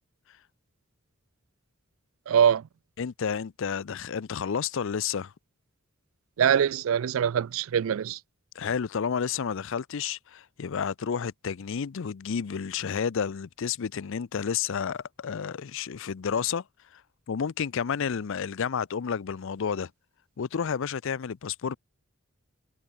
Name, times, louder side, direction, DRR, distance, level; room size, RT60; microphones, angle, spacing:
voice 1, 2.3-2.6 6.4-8.2, right 8 dB, 75° right, 0.4 m, -23 dB
voice 2, 3.0-5.3 8.5-16.6 16.9-17.0 17.3-19.9 20.4-21.8, left 7 dB, 65° left, 0.5 m, -31 dB
head